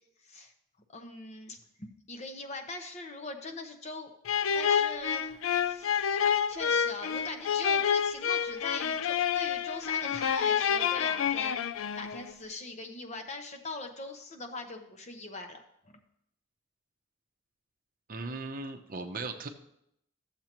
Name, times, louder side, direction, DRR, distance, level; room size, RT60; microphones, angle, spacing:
voice 1, 0.9-4.1 4.5-5.3 5.6-6.2 6.5-11.5 11.9-15.6 15.8-16.0, left 3 dB, 35° left, 5 dB, 0.9 m, -41 dB
sound 1, 4.3-12.3, left 8 dB, 70° left, 0.4 m, -28 dB
voice 2, 18.1-19.5, right 3 dB, 45° right, 5 dB, 0.7 m, -37 dB
13.5 x 7.4 x 3.0 m, 0.76 s
head